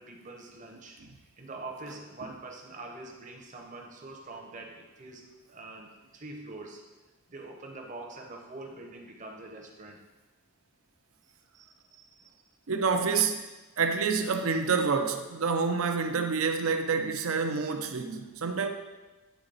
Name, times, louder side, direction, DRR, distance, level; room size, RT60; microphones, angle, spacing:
voice 1, 0.0-6.9 7.3-10.0 11.2-12.4, right 2 dB, 35° right, 0.8 m, -45 dB
voice 2, 12.7-13.4 13.8-18.7, right 5 dB, 75° right, 0.6 m, -28 dB
9.1 x 3.9 x 3.9 m
head